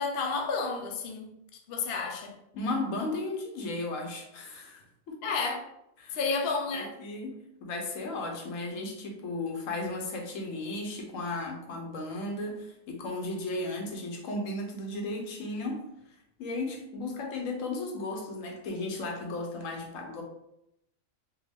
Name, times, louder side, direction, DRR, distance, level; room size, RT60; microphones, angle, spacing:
voice 1, 0.0-1.3 1.7-2.3 5.2-5.6 6.1-6.9, left 4 dB, 60° left, 0.7 m, -31 dB
voice 2, 2.5-5.2 6.0-6.2 6.7-15.9 16.4-20.2, left 2 dB, 80° left, 1.1 m, -35 dB
3.5 x 2.2 x 3.4 m
omnidirectional pair, 1.4 m